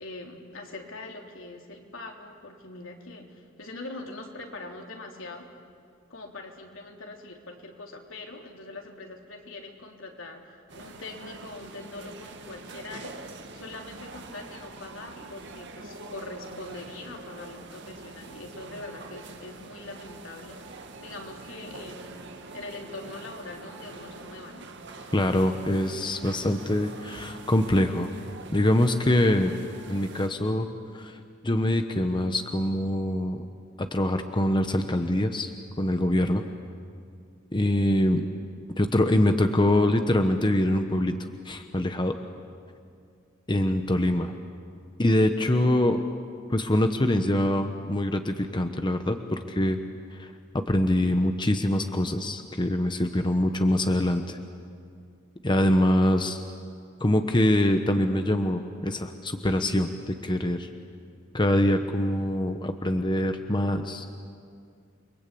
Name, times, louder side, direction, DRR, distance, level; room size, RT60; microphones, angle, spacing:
voice 1, 0.0-5.5 6.1-20.6 21.0-22.3 22.5-24.7, left 2 dB, 75° left, 1 dB, 3.4 m, -42 dB
sound 1, 10.7-30.3, right 3 dB, 60° right, 1.8 m, -44 dB
voice 2, 25.1-28.1 28.5-29.5 29.9-30.7 30.9-31.2 31.4-33.5 33.8-35.5 35.8-36.4 37.5-38.2 38.8-41.1 41.4-42.1 43.5-44.3 45.0-46.0 46.5-49.8 50.2-54.4 55.4-56.4 57.0-60.7 61.3-64.1, left 1 dB, 25° left, 6 dB, 1.0 m, -24 dB
29.5 x 23.0 x 8.5 m, 2.3 s
head